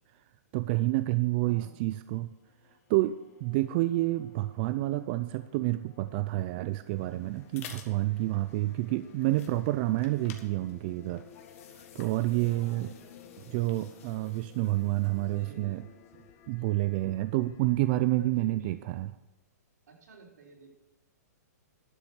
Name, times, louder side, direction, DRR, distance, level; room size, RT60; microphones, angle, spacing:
voice 1, 0.5-2.3 2.9-11.2 11.9-12.9 13.5-15.8 16.5-19.1, right 17 dB, 35° right, 12 dB, 0.4 m, -29 dB
voice 2, 1.4-1.8 8.4-9.2 12.6-13.2 15.2-16.0 18.1-18.8 19.9-20.7, right 4 dB, 75° right, -3 dB, 4.8 m, -53 dB
sound 1, 2.1-19.0, left 10 dB, 35° left, 1.2 m, -58 dB
sound 2, 6.7-16.6, left 7 dB, 50° left, 1.8 m, -53 dB
11.5 x 7.0 x 6.5 m, 1.0 s
hypercardioid pair, 145°, 9 cm